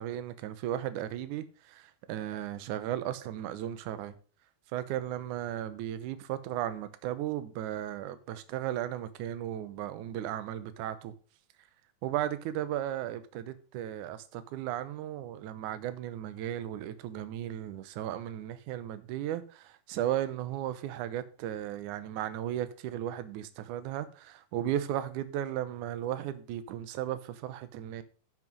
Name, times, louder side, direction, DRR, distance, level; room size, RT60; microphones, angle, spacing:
voice 1, 0.0-4.1 4.7-11.1 12.0-28.0, right 12 dB, 70° right, 1.9 m, -35 dB
11.0 x 5.8 x 5.3 m
omnidirectional pair, 4.4 m